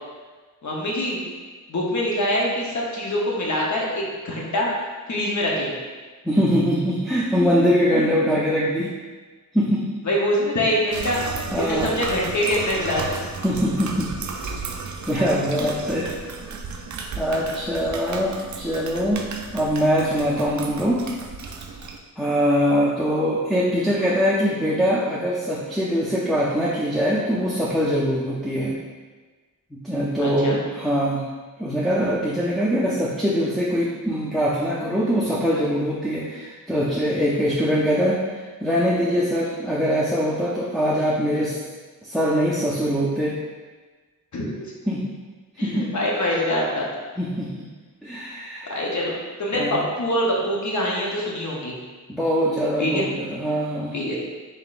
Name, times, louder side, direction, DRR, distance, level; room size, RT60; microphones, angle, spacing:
voice 1, 0.6-1.2 1.7-4.7 5.1-5.7 10.0-11.2 11.6-13.1 18.0-18.1 30.2-30.6 44.3-44.7 45.6-46.9 48.6-51.8 52.8-53.1 53.9-54.2, left 1 dB, 55° left, -3 dB, 0.9 m, -24 dB
voice 2, 6.2-8.9 9.5-9.9 11.5-12.0 13.4-14.1 15.1-16.1 17.2-19.3 19.5-21.0 22.2-28.8 29.8-31.2 31.6-41.6 42.0-43.4 44.9-45.1 45.6-45.9 47.2-47.6 48.0-48.8 49.5-49.8 52.1-53.9, equal, ahead, -6 dB, 0.4 m, -22 dB
sound 1, 10.9-22.0, right 4 dB, 55° right, 0.4 m, -34 dB
3.9 x 3.8 x 2.4 m, 1.4 s
wide cardioid pair, 95°, 35 cm